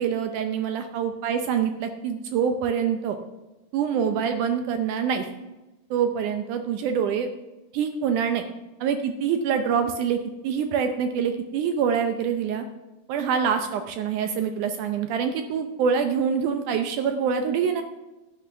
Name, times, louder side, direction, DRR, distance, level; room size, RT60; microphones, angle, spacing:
voice 1, 0.0-3.2 3.7-5.3 5.9-7.3 7.7-8.4 8.8-12.7 13.1-17.8, right 7 dB, 85° right, 7 dB, 1.7 m, -25 dB
12.0 x 8.4 x 5.6 m, 1.1 s
omnidirectional pair, 4.5 m